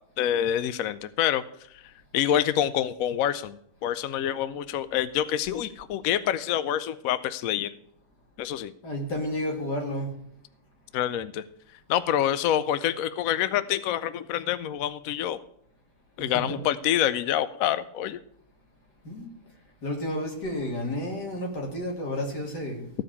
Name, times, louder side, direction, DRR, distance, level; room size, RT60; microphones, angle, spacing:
voice 1, 0.2-1.4 1.7-1.8 2.1-3.6 3.8-7.7 8.4-8.7 10.9-11.4 11.9-15.4 16.2-18.2, left 11 dB, 70° left, 15 dB, 0.9 m, -26 dB
voice 2, 8.8-10.1 16.2-16.6 19.0-19.3 19.8-22.9, left 1 dB, 85° left, 1 dB, 3.1 m, -31 dB
14.5 x 5.1 x 8.3 m, 0.70 s
omnidirectional pair, 1.7 m